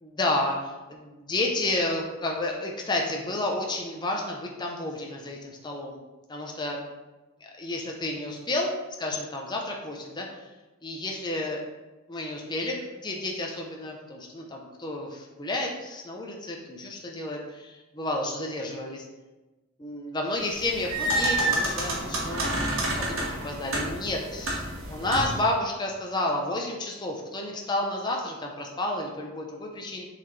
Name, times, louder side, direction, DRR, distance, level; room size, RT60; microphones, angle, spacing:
voice 1, 0.0-6.0 6.3-6.8 7.4-8.7 9.0-10.4 10.8-11.6 12.1-19.1 19.8-24.6 24.9-30.1, left 2 dB, 20° left, 0 dB, 0.7 m, -31 dB
sound 1, 20.5-25.5, right 1 dB, 65° right, 1.7 m, -29 dB
7.0 x 4.1 x 3.2 m, 1.1 s
head